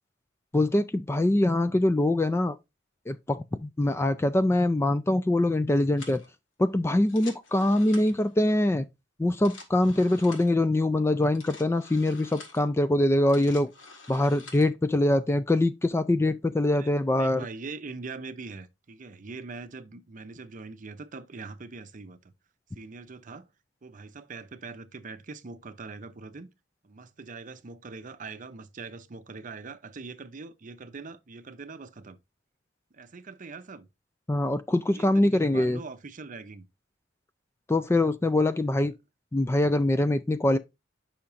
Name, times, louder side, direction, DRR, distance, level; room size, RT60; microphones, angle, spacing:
voice 1, 0.5-2.6 3.1-6.2 6.6-8.9 9.2-13.7 14.1-17.5 34.3-35.8 37.7-38.9 39.3-40.6, left 1 dB, 15° left, 0.3 m, -24 dB
sound 1, 6.0-6.3 7.0-8.3 9.2-10.6 11.2-12.6 13.1-14.7, left 3 dB, 90° left, 1.7 m, -48 dB
voice 2, 16.8-22.3 22.7-23.5 23.8-26.5 26.8-32.2 32.9-33.9 34.9-36.7, right 4 dB, 45° right, 0.6 m, -42 dB
8.4 x 5.7 x 2.5 m
head